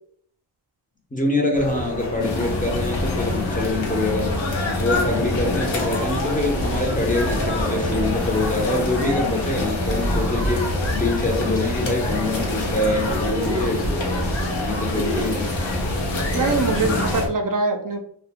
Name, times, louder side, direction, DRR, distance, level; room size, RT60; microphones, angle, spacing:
voice 1, 1.1-4.4 4.8-13.9 14.5-15.5 16.7-17.1, left 2 dB, 20° left, 1 dB, 0.5 m, -25 dB
sound 1, 1.5-17.3, left 1 dB, 65° left, 1.0 m, -30 dB
sound 2, 2.2-17.3, left 2 dB, 85° left, 0.7 m, -26 dB
voice 2, 16.3-18.0, right 4 dB, 50° right, 3 dB, 0.4 m, -23 dB
2.4 x 2.2 x 2.8 m, 0.63 s
wide cardioid pair, 80°, 44 cm